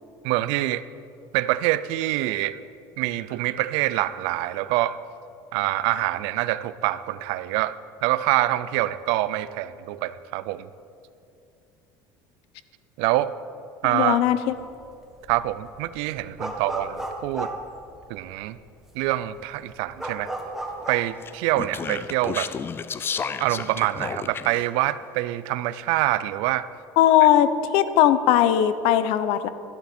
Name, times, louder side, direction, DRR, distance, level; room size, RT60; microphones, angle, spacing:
voice 1, 0.2-0.8 1.3-2.6 3.0-5.0 5.5-7.8 8.0-10.7 13.0-13.3 13.8-14.2 15.3-17.5 18.1-18.6 18.9-20.3 20.9-22.5 23.4-26.7, right 16 dB, 80° right, 15 dB, 0.4 m, -25 dB
voice 2, 13.9-14.5 27.0-29.5, left 11 dB, 75° left, 13 dB, 0.7 m, -19 dB
sound 1, 14.5-14.9 15.2-18.4 18.9-19.0 19.2-21.1, right 1 dB, 5° right, 1.3 m, -34 dB
Speech, 21.2-24.7, left 6 dB, 25° left, 0.3 m, -32 dB
13.0 x 11.0 x 4.3 m, 2.6 s
cardioid pair, 125°, 10 cm